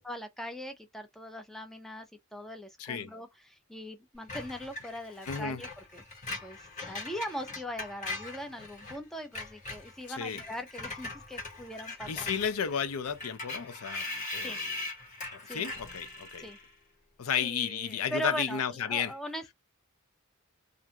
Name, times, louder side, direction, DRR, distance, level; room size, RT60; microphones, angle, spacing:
voice 1, 0.0-6.0 6.4-12.3 14.4-14.6 15.5-15.7 16.4-16.6 17.4-18.6 18.9-19.5, equal, ahead, 0.4 m, -40 dB
voice 2, 2.8-3.1 5.3-5.6 10.1-10.4 12.1-14.7 15.3-16.5 17.2-19.1, left 7 dB, 85° left, 0.5 m, -33 dB
Screech, 4.3-9.0 9.2-16.7, left 3 dB, 35° left, 1.2 m, -41 dB
2.5 x 2.3 x 2.7 m
head